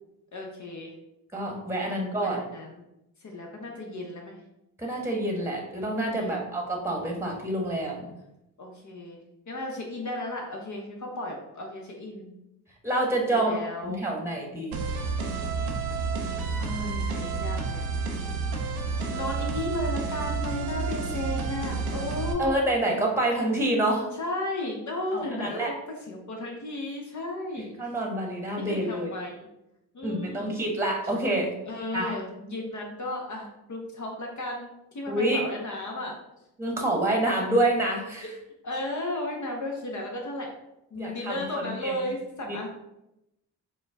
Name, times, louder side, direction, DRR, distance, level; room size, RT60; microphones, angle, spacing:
voice 1, 0.3-0.9 1.9-2.8 3.2-4.4 6.2-6.6 8.6-9.2 9.5-12.3 13.3-14.0 16.6-17.9 19.1-22.5 24.1-27.7 28.6-29.5 29.9-30.6 31.6-36.2 38.2-38.3 38.6-40.5 40.9-42.7, left 1 dB, 40° left, 0 dB, 0.9 m, -34 dB
voice 2, 1.3-2.4 4.8-8.1 12.8-14.8 22.4-24.1 25.1-25.7 27.8-29.1 30.0-31.5 31.9-32.1 35.1-35.4 36.6-38.3 40.9-42.1 42.5-42.7, right 1 dB, 5° right, 0 dB, 1.1 m, -27 dB
sound 1, 14.7-22.3, right 4 dB, 85° right, 0.6 m, -30 dB
4.2 x 2.2 x 3.3 m, 0.87 s
hypercardioid pair, 40°, 45 cm